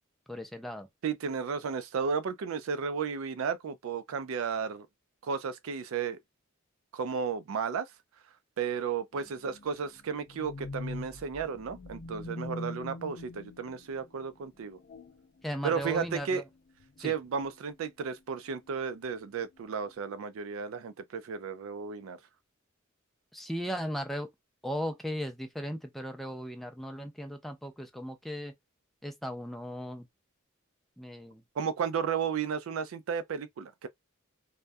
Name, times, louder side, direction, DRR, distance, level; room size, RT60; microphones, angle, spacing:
voice 1, 0.3-0.9 15.4-16.4 17.0-17.1 23.3-24.3 24.6-28.5 29.0-30.1 31.0-31.4, equal, ahead, 0.4 m, -37 dB
voice 2, 1.0-4.9 5.2-6.2 6.9-7.9 8.6-14.8 15.6-16.4 17.0-22.2 31.6-33.9, right 6 dB, 75° right, 0.4 m, -33 dB
sound 1, 9.1-14.2 14.8-15.3 15.6-16.3 16.8-17.0 17.4-17.5, left 2 dB, 55° left, 0.5 m, -43 dB
2.3 x 2.1 x 2.5 m
head